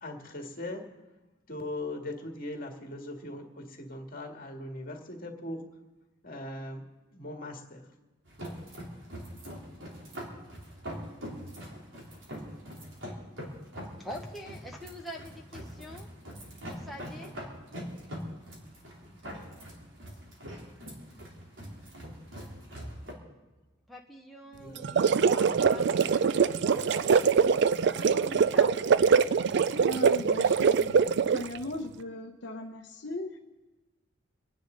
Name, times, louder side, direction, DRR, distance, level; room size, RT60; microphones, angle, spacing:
voice 1, 0.0-0.9 1.5-5.7 6.2-6.8 7.1-7.8 24.6-24.8, left 1 dB, 45° left, 2 dB, 2.0 m, -39 dB
sound 1, 8.2-23.1, equal, 75° right, 3.4 m, -43 dB
voice 2, 14.0-16.1 16.7-17.3 23.9-27.3 27.9-28.7 29.3-29.6, equal, ahead, -2 dB, 1.0 m, -45 dB
sound 2, 24.8-31.6, right 6 dB, 55° right, 0.4 m, -23 dB
voice 3, 29.7-31.0 31.3-33.4, left 1 dB, 60° left, 2 dB, 0.8 m, -38 dB
26.5 x 10.0 x 3.9 m, 1.1 s
head